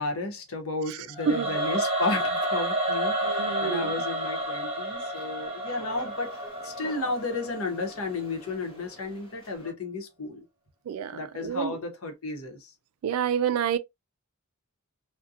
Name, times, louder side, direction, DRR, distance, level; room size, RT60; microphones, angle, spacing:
voice 1, 0.0-6.3 6.6-10.4 11.1-12.7, left 3 dB, 70° left, 0.8 m, -33 dB
voice 2, 0.9-1.5 3.2-3.9 10.9-11.8 13.0-13.8, right 8 dB, 70° right, 0.3 m, -29 dB
Singing / Musical instrument, 1.1-8.2, right 1 dB, 30° right, 0.7 m, -30 dB
sound 1, 3.9-9.7, right 1 dB, 25° left, 0.7 m, -49 dB
2.7 x 2.1 x 2.4 m
head